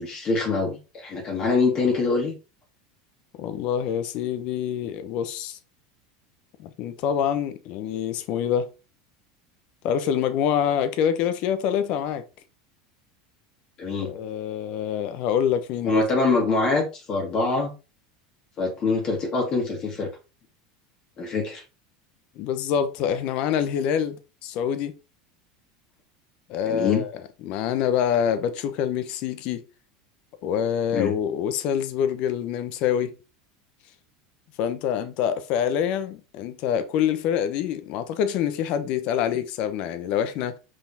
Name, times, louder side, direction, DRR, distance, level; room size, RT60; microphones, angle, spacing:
voice 1, 0.0-2.3 13.8-14.1 15.8-17.7 18.6-20.1 21.2-21.6 26.6-27.0 30.9-31.1, left 4 dB, 35° left, 2.3 m, -24 dB
voice 2, 3.4-5.6 6.6-8.7 9.8-12.2 14.0-16.0 22.4-24.9 26.5-27.1 27.4-29.6 30.4-33.1 34.6-40.6, left 9 dB, 55° left, 1.2 m, -26 dB
6.0 x 5.0 x 4.2 m
supercardioid pair, 130°, 2 cm